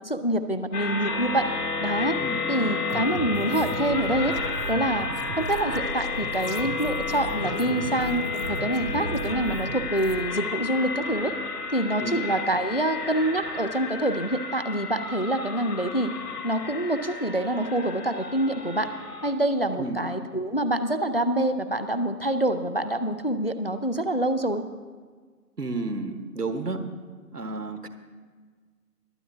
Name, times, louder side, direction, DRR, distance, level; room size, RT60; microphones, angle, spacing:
voice 1, 0.0-1.5 1.8-2.2 2.5-4.3 4.7-5.1 5.4-11.3 11.7-16.1 16.4-18.9 19.2-24.6, right 1 dB, 40° left, 10 dB, 0.4 m, -26 dB
sound 1, 0.7-19.3, left 4 dB, 80° left, 1.9 m, -32 dB
sound 2, 2.9-10.3, right 4 dB, 60° right, 0.8 m, -36 dB
voice 2, 25.6-26.8 27.3-27.9, right 3 dB, 75° right, 8 dB, 1.3 m, -31 dB
22.5 x 8.4 x 3.6 m, 1.5 s
figure-of-eight pair, 150°, 47 cm